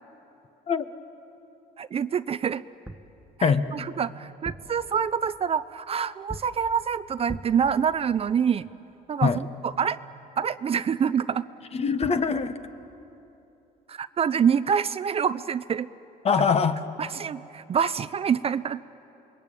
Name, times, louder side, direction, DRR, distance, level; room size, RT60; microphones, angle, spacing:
voice 1, 1.8-2.6 3.4-8.7 9.1-10.0 10.4-11.4 13.9-15.9 17.0-18.8, right 7 dB, 35° right, 15 dB, 0.5 m, -26 dB
sound 1, 2.8-3.2 4.3-4.8 6.3-6.7 7.3-7.7 11.7-11.8 12.0-12.3, right 1 dB, 5° right, 1.2 m, -40 dB
voice 2, 11.7-12.5 16.2-16.8, left 5 dB, 35° left, 10 dB, 1.2 m, -23 dB
28.0 x 22.0 x 9.0 m, 3.0 s
cardioid pair, 110°, 17 cm